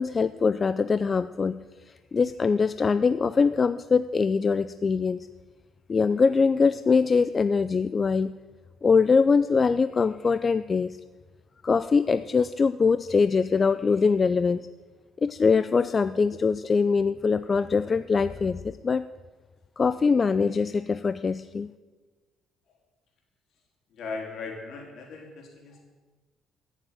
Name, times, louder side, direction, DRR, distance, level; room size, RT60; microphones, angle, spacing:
voice 1, 0.0-1.6 2.1-5.3 5.9-8.3 8.8-11.0 11.6-14.6 15.2-19.1 19.8-21.7, left 5 dB, 30° left, 13 dB, 0.4 m, -23 dB
voice 2, 23.9-25.8, left 4 dB, 60° left, 0 dB, 4.2 m, -38 dB
15.0 x 7.3 x 9.2 m, 1.3 s
cardioid pair, 100°, 0 cm